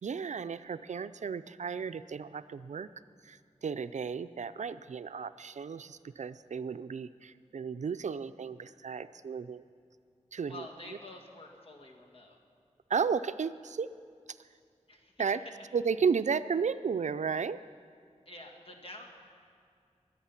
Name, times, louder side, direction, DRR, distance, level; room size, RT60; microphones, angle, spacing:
voice 1, 0.0-2.9 3.2-9.6 10.3-10.7 12.9-13.9 15.2-15.4 15.7-17.6, right 6 dB, 70° right, 13 dB, 0.4 m, -33 dB
voice 2, 10.5-12.4 14.9-15.3 18.3-19.1, left 1 dB, 50° left, 0 dB, 2.1 m, -48 dB
22.5 x 9.0 x 5.8 m, 2.3 s
wide cardioid pair, 75°, 12 cm